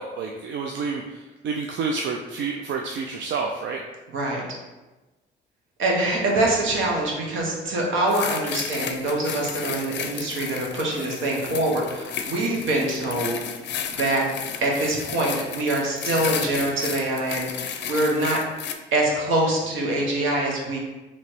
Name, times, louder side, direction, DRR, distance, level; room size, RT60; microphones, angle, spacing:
voice 1, 0.0-3.8 11.0-11.1, right 4 dB, 65° right, 1 dB, 0.4 m, -29 dB
voice 2, 4.1-4.4 5.8-14.3 14.6-18.4 18.9-20.8, right 1 dB, 80° right, -2 dB, 1.1 m, -24 dB
sound 1, 8.1-18.7, left 7 dB, 65° left, 0.4 m, -33 dB
3.0 x 3.0 x 4.4 m, 1.2 s
cardioid pair, 90°, 20 cm